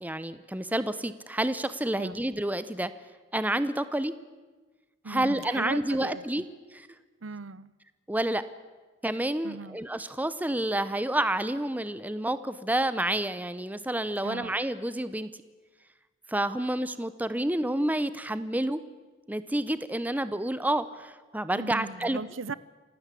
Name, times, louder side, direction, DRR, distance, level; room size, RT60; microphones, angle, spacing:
voice 1, 0.0-2.9 3.3-4.1 5.1-6.4 6.7-6.9 8.1-8.4 9.0-15.3 16.3-18.8 19.3-22.2, right 1 dB, 10° right, 14 dB, 0.8 m, -29 dB
voice 2, 5.0-6.4 7.2-7.7 9.4-9.8 14.2-14.5 21.6-22.5, right 4 dB, 80° right, 19 dB, 0.8 m, -38 dB
27.5 x 16.5 x 8.4 m, 1.3 s
head